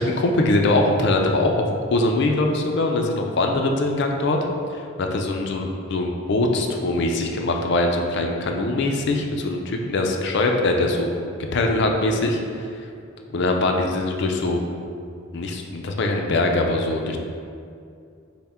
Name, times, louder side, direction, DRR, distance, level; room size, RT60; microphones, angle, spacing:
voice 1, 0.0-4.4 5.1-11.1 11.5-12.4 13.3-14.6 15.3-17.2, left 2 dB, 55° left, 2 dB, 0.4 m, -22 dB
5.6 x 2.1 x 4.2 m, 2.4 s
head